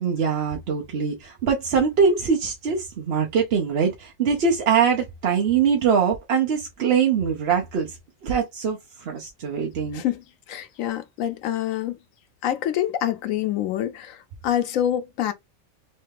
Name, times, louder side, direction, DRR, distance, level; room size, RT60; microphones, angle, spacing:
voice 1, 0.0-10.0, right 6 dB, 55° right, 0.9 m, -23 dB
voice 2, 9.9-12.0 12.4-15.3, left 11 dB, 85° left, 1.0 m, -26 dB
3.3 x 3.2 x 3.3 m
omnidirectional pair, 1.4 m